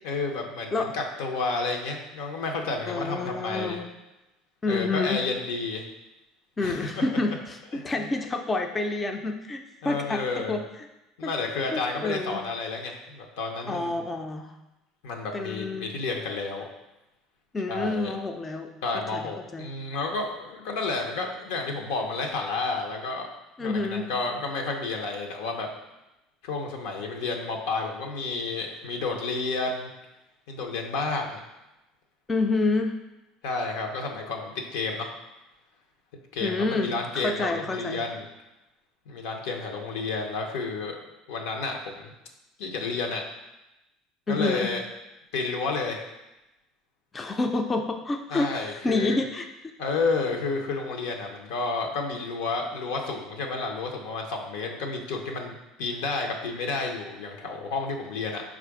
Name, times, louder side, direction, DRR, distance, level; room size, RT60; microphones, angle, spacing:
voice 1, 0.0-3.8 4.7-5.9 6.6-7.0 7.7-8.1 9.8-10.6 11.2-13.9 15.0-16.6 17.7-18.1 18.8-23.3 23.6-25.7 26.4-29.9 30.5-31.4 33.4-35.1 36.3-38.3 39.1-41.0 41.3-42.1 42.6-43.2 44.3-44.8 45.3-46.0 48.3-49.2 49.8-58.4, left 3 dB, 85° left, 2 dB, 0.7 m, -31 dB
voice 2, 2.9-3.9 4.6-5.2 6.6-10.6 11.2-11.3 11.7-12.5 13.7-14.5 15.3-15.9 17.5-18.7 19.1-19.7 23.6-24.1 32.3-33.0 36.4-38.0 44.3-44.7 47.1-49.7, left 3 dB, 20° left, 4 dB, 0.4 m, -28 dB
4.4 x 2.4 x 4.7 m, 0.97 s
supercardioid pair, 105°, 0 cm